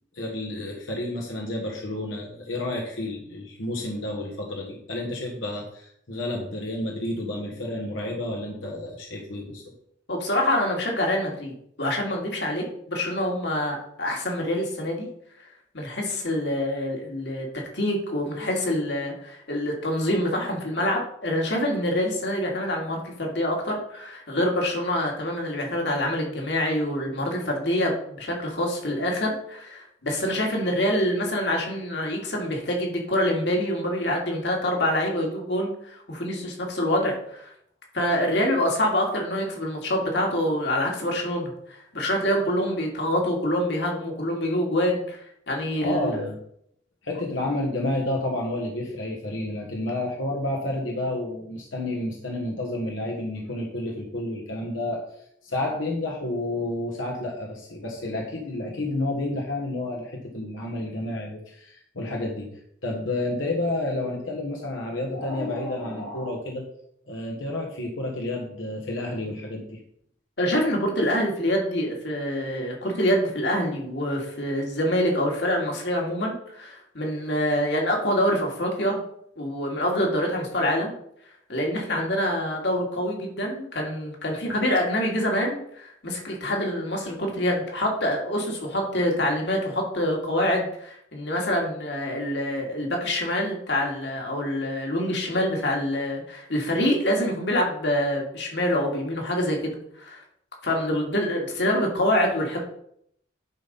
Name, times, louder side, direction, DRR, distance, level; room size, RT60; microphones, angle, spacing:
voice 1, 0.1-9.7 22.5-22.6 45.8-46.4 47.0-55.0 55.4-62.5 62.8-66.6 67.0-69.8, left 1 dB, 90° left, 0 dB, 1.5 m, -30 dB
voice 2, 10.1-11.5 11.8-15.1 15.7-17.5 17.7-37.5 37.9-45.2 45.5-46.2 70.4-79.0 79.4-80.9 81.5-100.2 100.6-102.6, left 1 dB, 65° left, 0 dB, 2.2 m, -26 dB
10.5 x 4.2 x 5.4 m, 0.70 s
head